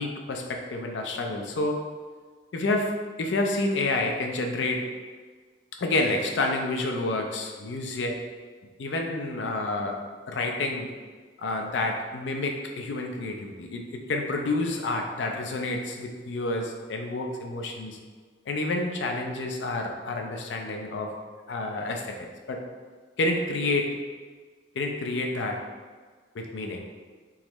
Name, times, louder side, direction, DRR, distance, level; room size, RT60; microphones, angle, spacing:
voice 1, 0.0-1.8 2.5-4.9 5.8-8.3 8.8-10.9 11.4-18.0 18.5-21.2 21.5-22.6 23.2-24.0 24.7-25.7 26.3-26.9, left 2 dB, 85° left, 3 dB, 0.5 m, -29 dB
3.6 x 3.0 x 3.0 m, 1.5 s
head